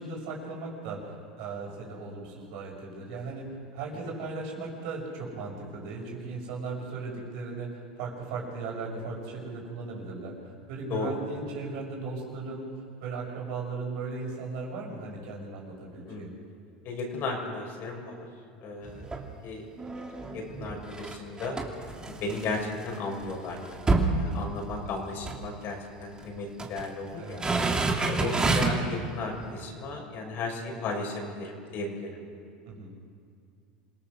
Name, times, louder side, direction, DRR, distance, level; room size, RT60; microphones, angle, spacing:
voice 1, 0.0-12.7 13.0-16.3 19.1-19.3 27.2-27.4 32.7-32.9, right 3 dB, 65° right, -1 dB, 6.6 m, -37 dB
voice 2, 10.9-11.2 16.1-16.3 16.8-18.3 18.6-19.7 20.3-21.6 22.0-27.4 28.0-32.1, left 3 dB, 50° left, 1 dB, 6.3 m, -35 dB
sound 1, 18.8-19.3 19.8-22.8 23.2-23.3 23.6-25.0 25.2-25.4 26.2-26.9 27.3-28.9 29.4-29.5, right 3 dB, 15° right, 2.9 m, -28 dB
27.5 x 17.5 x 6.5 m, 2.3 s
hypercardioid pair, 85°, 5 cm